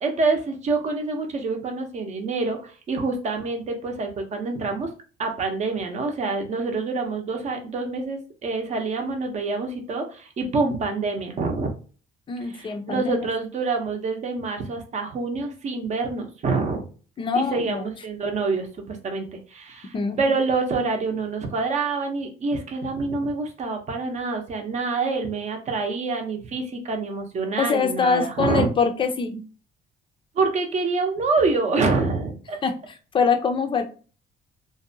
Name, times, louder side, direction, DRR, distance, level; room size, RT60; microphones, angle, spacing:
voice 1, 0.0-4.9 5.2-11.7 12.5-16.8 17.3-28.7 30.3-32.6, right 3 dB, 45° right, 3 dB, 0.7 m, -26 dB
voice 2, 12.3-13.3 17.2-17.9 19.9-20.2 27.6-29.4 32.6-32.7 33.1-33.8, left 5 dB, 30° left, 6 dB, 0.5 m, -23 dB
2.6 x 2.1 x 2.6 m, 0.38 s
cardioid pair, 110°, 17 cm